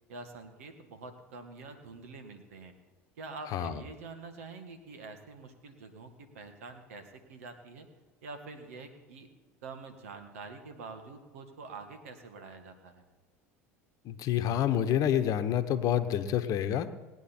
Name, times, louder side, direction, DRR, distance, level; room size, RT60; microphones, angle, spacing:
voice 1, 0.1-2.7 3.2-7.9 8.2-9.3 9.6-13.0, right 3 dB, 80° right, 7 dB, 1.7 m, -46 dB
voice 2, 3.5-3.8 14.0-16.9, left 10 dB, 50° left, 10 dB, 1.0 m, -28 dB
19.0 x 9.1 x 4.4 m, 1.3 s
hypercardioid pair, 80°, 8 cm